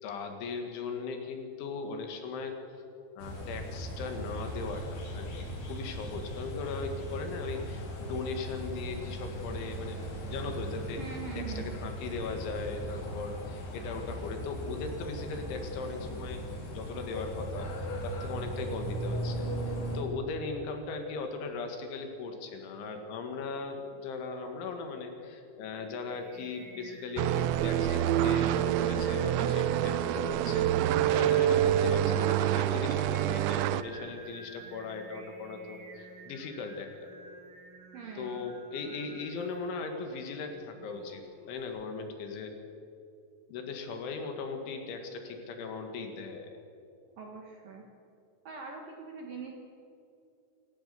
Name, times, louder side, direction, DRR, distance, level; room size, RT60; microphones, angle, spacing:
voice 1, 0.0-2.8 3.2-10.0 10.3-11.0 11.4-16.5 16.7-37.1 38.2-42.5 43.5-46.5, left 4 dB, 70° left, 5 dB, 4.0 m, -38 dB
sound 1, 3.2-20.0, right 1 dB, 55° left, 5.3 m, -38 dB
voice 2, 11.0-11.6 37.9-38.4 47.2-47.8 48.4-49.5, right 5 dB, 60° right, 1 dB, 2.5 m, -42 dB
Singing, 25.6-41.8, right 3 dB, 45° right, 2.4 m, -50 dB
sound 2, 27.2-33.8, right 12 dB, 90° right, 2.6 m, -26 dB
27.5 x 15.0 x 6.9 m, 2.7 s
omnidirectional pair, 6.0 m